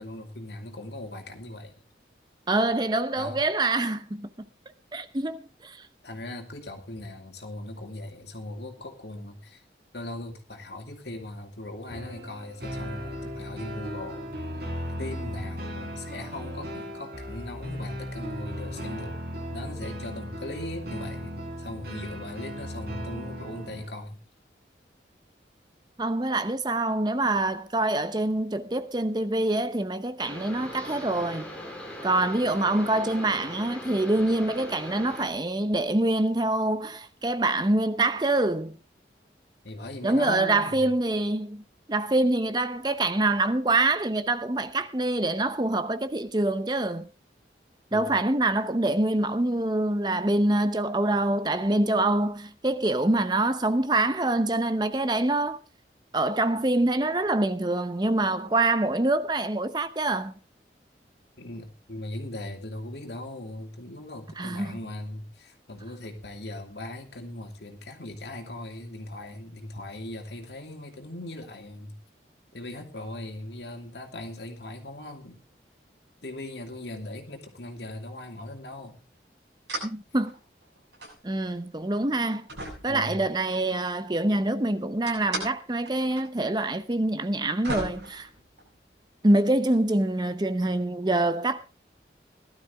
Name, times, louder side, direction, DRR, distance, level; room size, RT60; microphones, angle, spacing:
voice 1, 0.0-1.7 3.1-3.5 6.0-9.6 9.9-14.6 15.0-19.2 19.5-24.2 39.6-40.8 47.9-48.1 61.4-72.0 72.5-75.4 76.2-79.0 82.9-83.2, left 1 dB, 70° left, 2.6 m, -39 dB
voice 2, 2.5-4.3 4.9-5.8 26.0-31.5 32.0-38.8 40.0-41.6 41.9-47.1 47.9-55.6 56.1-60.3 64.4-64.8 79.8-80.3 81.2-82.5 82.8-88.3 89.2-91.7, right 2 dB, 25° right, 0.7 m, -25 dB
sound 1, 11.9-23.9, equal, 60° right, 3.8 m, -36 dB
sound 2, 30.2-35.3, left 1 dB, 5° left, 3.7 m, -40 dB
sound 3, 79.7-80.0 80.3-81.2 81.8-81.9 82.5-83.6 85.1-85.5 85.9-86.2 86.5-86.6 87.3-87.4 87.6-88.8, right 2 dB, 80° right, 7.8 m, -36 dB
18.0 x 12.0 x 3.5 m
head